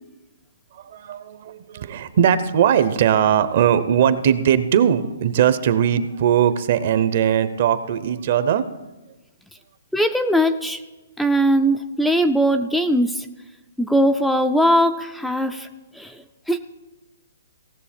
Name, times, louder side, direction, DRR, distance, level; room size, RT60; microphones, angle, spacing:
voice 1, 0.7-8.6, right 9 dB, 50° right, 13 dB, 0.7 m, -19 dB
voice 2, 9.9-10.8 11.2-13.3 13.8-15.7 15.9-16.6, equal, ahead, 7 dB, 0.3 m, -20 dB
17.0 x 6.8 x 4.3 m, 1.1 s
hypercardioid pair, 160°, 0 cm